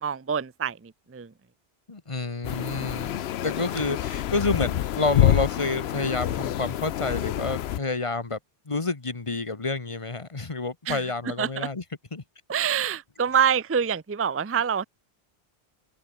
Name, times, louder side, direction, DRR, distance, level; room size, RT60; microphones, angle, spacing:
voice 1, 0.0-1.3 10.9-11.0 11.4-11.7 12.5-14.8, right 7 dB, 20° right, 0.4 m, -26 dB
voice 2, 1.9-8.4 8.7-11.8 12.1-12.2, left 3 dB, 30° left, 1.4 m, -29 dB
sound 1, 2.4-7.8, left 11 dB, 80° left, 0.9 m, -27 dB
open air
omnidirectional pair, 1.0 m